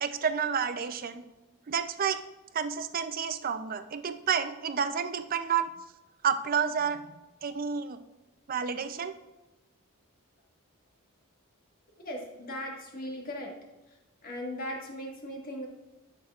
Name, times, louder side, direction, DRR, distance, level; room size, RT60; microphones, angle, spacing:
voice 1, 0.0-1.3 1.7-2.2 2.5-5.7 6.2-7.0 7.4-8.0 8.5-9.1, right 7 dB, 40° right, 11 dB, 0.4 m, -30 dB
voice 2, 12.0-13.5 14.2-15.7, left 1 dB, 40° left, 0 dB, 1.5 m, -38 dB
10.5 x 6.0 x 2.4 m, 1.1 s
head